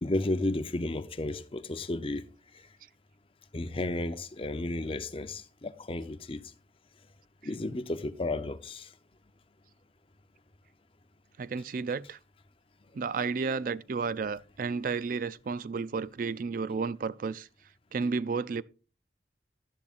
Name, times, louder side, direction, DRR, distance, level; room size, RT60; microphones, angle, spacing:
voice 1, 0.0-2.8 3.5-6.5 7.4-8.9, left 2 dB, 30° left, 0.6 m, -33 dB
voice 2, 11.4-12.2 12.9-17.5 17.9-18.6, right 5 dB, 50° right, 0.3 m, -32 dB
11.5 x 11.0 x 2.5 m
head